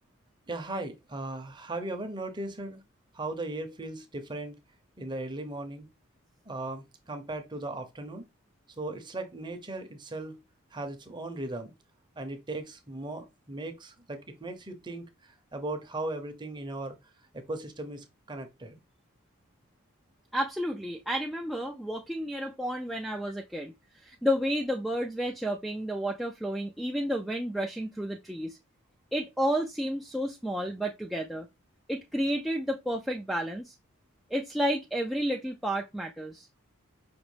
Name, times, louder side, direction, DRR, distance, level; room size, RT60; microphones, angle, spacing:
voice 1, 0.5-2.8 3.1-4.6 5.0-5.9 6.5-8.3 8.8-10.4 10.7-11.7 12.2-17.0 17.3-18.8, right 2 dB, 20° right, 0.7 m, -37 dB
voice 2, 20.3-28.6 29.1-31.5 31.9-33.7 34.3-36.5, equal, ahead, 0.3 m, -31 dB
5.2 x 2.9 x 3.2 m
head